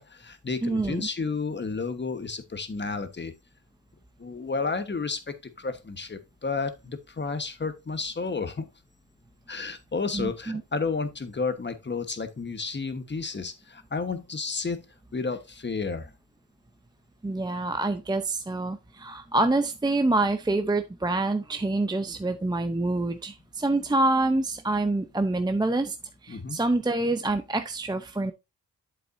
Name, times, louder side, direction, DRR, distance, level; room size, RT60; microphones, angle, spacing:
voice 1, 0.0-3.3 4.2-5.2 5.6-8.7 9.5-14.8 15.1-16.1 26.3-26.6, left 4 dB, 30° left, 1.2 m, -31 dB
voice 2, 0.6-1.1 10.1-10.6 17.2-26.0 26.2-28.3, right 2 dB, 10° right, 0.6 m, -26 dB
8.3 x 7.5 x 2.6 m
cardioid pair, 80°, 35 cm